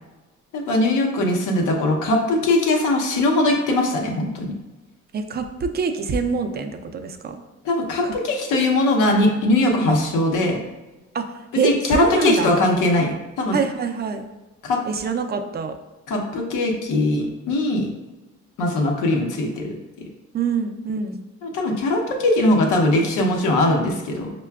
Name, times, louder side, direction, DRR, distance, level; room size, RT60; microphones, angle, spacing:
voice 1, 0.5-4.5 7.6-10.6 11.6-13.6 14.6-14.8 16.1-17.9 18.6-19.7 21.4-24.3, left 2 dB, 90° left, 1 dB, 0.7 m, -20 dB
voice 2, 5.1-7.3 8.0-8.1 11.1-11.3 11.5-12.5 13.5-14.2 14.8-15.8 20.3-21.2, right 5 dB, 35° right, 7 dB, 0.4 m, -25 dB
5.5 x 2.2 x 2.3 m, 1.1 s
cardioid pair, 90°, 30 cm